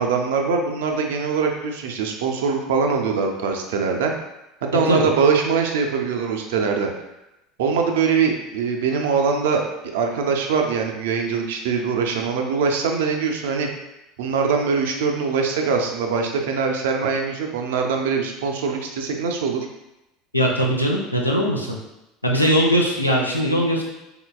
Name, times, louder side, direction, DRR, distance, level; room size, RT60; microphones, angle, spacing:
voice 1, 0.0-4.1 4.6-6.9 7.6-9.6 9.9-13.7 14.2-19.7, right 5 dB, 60° right, 3 dB, 0.5 m, -22 dB
voice 2, 20.3-21.8 22.2-23.8, equal, 90° left, -1 dB, 0.5 m, -20 dB
3.9 x 3.8 x 2.3 m, 0.93 s
figure-of-eight pair, 70°, 0 cm